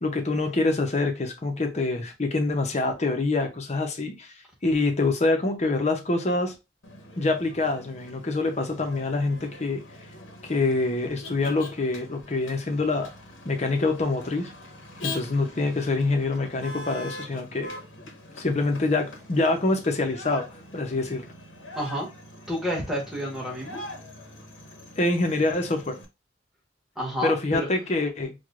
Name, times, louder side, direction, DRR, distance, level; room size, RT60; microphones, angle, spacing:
voice 1, 0.0-4.3 4.6-6.5 7.2-9.8 10.4-13.1 13.4-14.5 15.0-17.7 18.3-20.5 20.7-21.2 25.0-26.0 27.2-28.3, left 2 dB, 35° left, 0.6 m, -25 dB
Motor vehicle (road), 6.8-26.1, left 2 dB, 90° left, 0.9 m, -43 dB
voice 2, 21.7-22.1 22.5-23.8 27.0-27.7, equal, ahead, 1.2 m, -29 dB
4.6 x 2.2 x 2.4 m
head